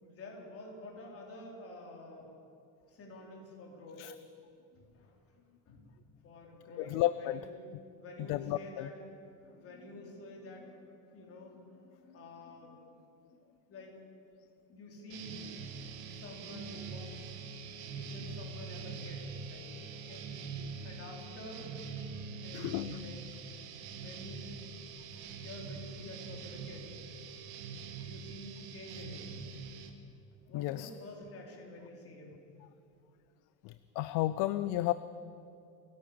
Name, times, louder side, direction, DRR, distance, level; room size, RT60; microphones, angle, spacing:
voice 1, 0.0-2.3 2.9-4.1 4.8-5.1 5.7-5.9 6.2-7.6 8.0-9.0 9.4-12.9 13.7-13.9 14.7-15.4 16.1-17.3 17.9-20.3 20.8-21.7 22.3-23.2 23.9-24.6 25.4-26.9 28.0-29.3 30.5-32.4, left 2 dB, 35° left, 0 dB, 4.1 m, -49 dB
voice 2, 6.8-7.4 8.3-8.9 20.6-20.7 22.5-23.4 30.5-30.9 33.6-34.9, left 15 dB, 50° left, 14 dB, 0.5 m, -33 dB
sound 1, 15.1-29.9, right 5 dB, 65° right, 2.3 m, -44 dB
29.5 x 11.0 x 8.7 m, 2.5 s
cardioid pair, 165°, 41 cm